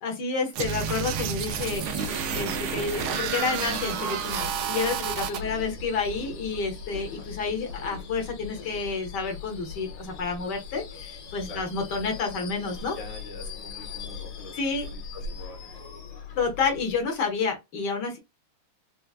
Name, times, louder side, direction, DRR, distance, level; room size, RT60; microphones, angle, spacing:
voice 1, 0.0-13.0 14.5-14.9 16.4-18.2, left 4 dB, 60° left, 1.4 m, -30 dB
sound 1, 0.5-5.4, right 8 dB, 80° right, 1.4 m, -30 dB
Subway metro underground / Screech, 1.4-17.3, left 5 dB, 85° left, 1.9 m, -40 dB
voice 2, 12.9-14.6 14.8-15.9, left 2 dB, 40° left, 0.4 m, -45 dB
4.5 x 2.2 x 2.3 m
omnidirectional pair, 2.3 m